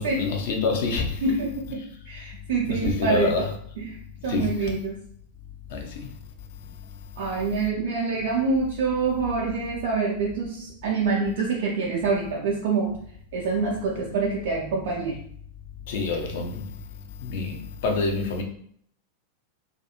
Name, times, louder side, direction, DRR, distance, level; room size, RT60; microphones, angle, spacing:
voice 1, 0.0-1.1 2.7-3.4 4.3-4.5 5.7-6.1 15.9-16.6 17.2-17.6 17.8-18.4, left 4 dB, 55° left, 0.5 m, -26 dB
voice 2, 1.2-3.5 3.8-4.0 4.2-4.9 7.2-13.0 13.3-15.2, right 4 dB, 50° right, 0.4 m, -26 dB
2.4 x 2.2 x 2.8 m
figure-of-eight pair, 90°, 0 cm